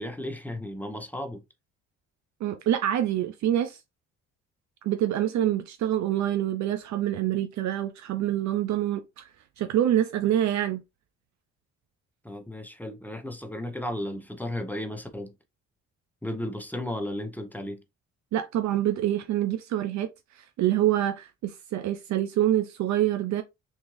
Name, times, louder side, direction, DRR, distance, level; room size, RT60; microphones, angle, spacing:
voice 1, 0.0-1.4 12.2-15.3 16.2-17.8, left 1 dB, 5° left, 0.7 m, -34 dB
voice 2, 2.4-3.8 4.8-9.3 9.6-10.8 18.3-20.1 20.4-23.4, right 12 dB, 70° right, 0.5 m, -26 dB
3.6 x 2.6 x 3.1 m
cardioid pair, 90°, 30 cm